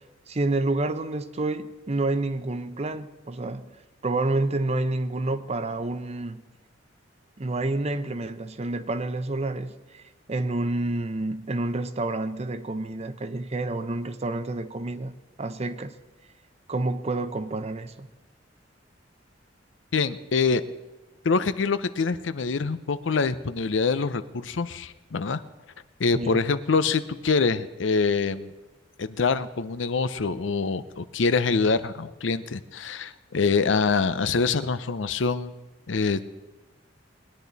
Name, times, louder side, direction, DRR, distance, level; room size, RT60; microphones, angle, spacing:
voice 1, 0.3-3.7 4.0-6.4 7.4-15.9 16.7-18.1 26.1-26.4, right 2 dB, 35° right, 11 dB, 0.6 m, -29 dB
voice 2, 19.9-20.6 21.2-25.4 26.0-28.5 29.0-35.5 35.9-36.2, left 4 dB, 80° left, 13 dB, 0.6 m, -25 dB
20.0 x 10.5 x 4.0 m, 1.1 s
head